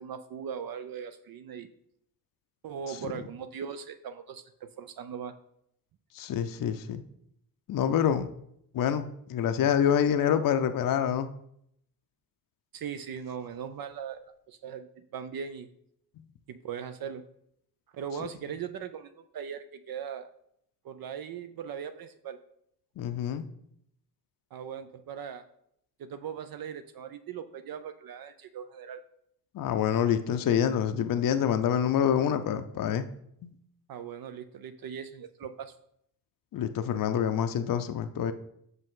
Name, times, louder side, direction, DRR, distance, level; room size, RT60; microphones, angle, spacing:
voice 1, 0.0-1.7 2.6-4.4 4.8-5.3 12.7-14.2 14.5-15.7 16.5-17.2 17.9-20.3 20.8-22.4 24.5-25.4 26.0-29.0 33.9-35.8, right 7 dB, 60° right, 9 dB, 0.5 m, -39 dB
voice 2, 6.1-7.0 7.7-8.3 8.7-11.3 23.0-23.4 29.5-33.1 33.4-33.5 36.5-38.3, left 9 dB, 55° left, 9 dB, 0.6 m, -26 dB
6.0 x 5.4 x 3.7 m, 0.73 s
cardioid pair, 65°, 40 cm